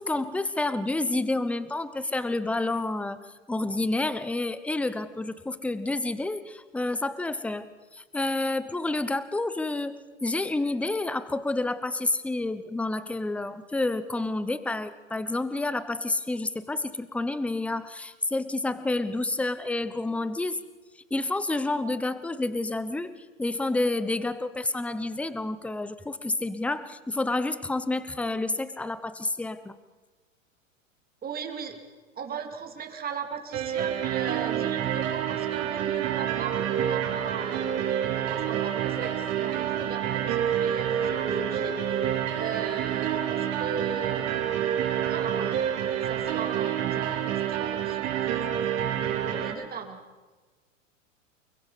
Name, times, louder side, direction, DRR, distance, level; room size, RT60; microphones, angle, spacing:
voice 1, 0.0-3.2 3.5-20.6 21.1-29.8, left 2 dB, 5° left, 14 dB, 0.9 m, -29 dB
voice 2, 31.2-31.8 32.2-37.7 38.0-41.8 42.3-44.3 44.9-45.8 46.0-50.0, right 6 dB, 25° right, 4 dB, 2.9 m, -38 dB
sound 1, 33.5-49.5, right 9 dB, 40° right, 3.5 m, -28 dB
29.5 x 21.5 x 4.2 m, 1.3 s
figure-of-eight pair, 100°, 39 cm